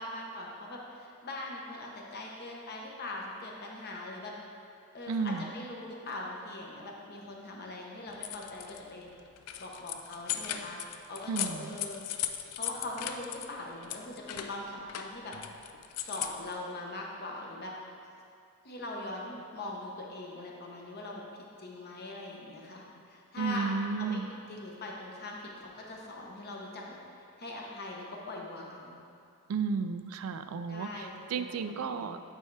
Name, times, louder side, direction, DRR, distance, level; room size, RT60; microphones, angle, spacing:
voice 1, 0.0-4.3 4.9-9.1 9.6-10.8 11.1-12.0 12.5-15.3 16.0-17.7 18.6-21.2 21.6-24.2 24.5-27.0 27.4-29.0 30.7-32.2, left 2 dB, 45° left, -2 dB, 0.9 m, -41 dB
voice 2, 5.1-5.5 11.3-11.7 23.4-24.3 29.5-32.2, right 5 dB, 65° right, 10 dB, 0.3 m, -33 dB
sound 1, 8.1-8.8 9.2-13.5 13.8-16.5, left 11 dB, 85° left, 0.4 m, -38 dB
9.0 x 4.6 x 3.3 m, 2.5 s
head